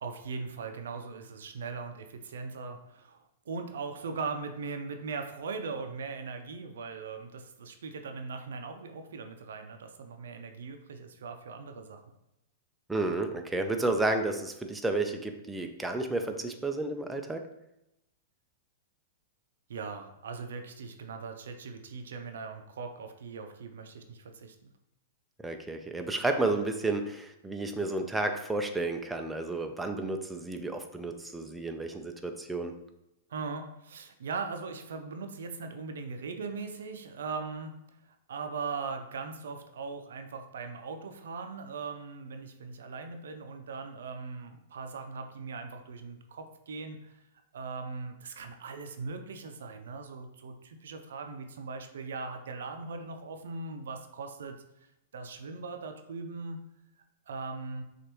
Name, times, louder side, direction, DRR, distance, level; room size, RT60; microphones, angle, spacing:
voice 1, 0.0-12.0 19.7-24.5 33.3-37.7 38.3-47.2 47.5-54.6 55.1-56.6 57.3-57.8, right 4 dB, 75° right, 6 dB, 0.5 m, -39 dB
voice 2, 12.9-17.4 25.4-32.8, right 2 dB, 5° right, 5 dB, 0.5 m, -31 dB
6.1 x 2.5 x 3.0 m, 0.87 s
hypercardioid pair, 115°, 0 cm